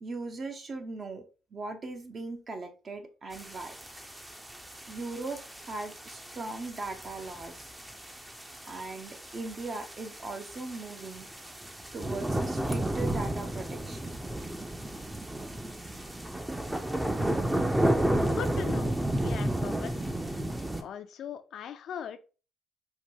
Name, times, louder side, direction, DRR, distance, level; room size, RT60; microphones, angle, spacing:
voice 1, 0.0-1.2 1.5-3.7 4.9-7.7 8.7-11.3 11.9-14.2, right 3 dB, 45° right, 5 dB, 0.7 m, -39 dB
sound 1, 3.3-20.8, right 1 dB, 10° right, 0.5 m, -32 dB
voice 2, 18.2-20.2 20.8-22.2, left 8 dB, 70° left, 10 dB, 0.4 m, -40 dB
4.6 x 2.3 x 2.7 m, 0.34 s
cardioid pair, 90°, 0 cm